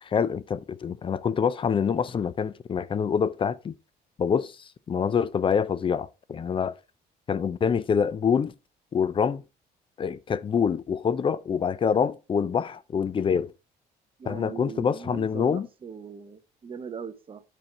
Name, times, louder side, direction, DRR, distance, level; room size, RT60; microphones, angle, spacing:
voice 1, 0.0-3.7 4.2-6.8 7.3-8.5 8.9-9.4 10.0-13.5 14.3-15.7, left 7 dB, 30° left, 0.6 m, -26 dB
voice 2, 14.2-17.4, right 6 dB, 30° right, 0.9 m, -40 dB
9.0 x 4.6 x 4.5 m
cardioid pair, 110°, 17 cm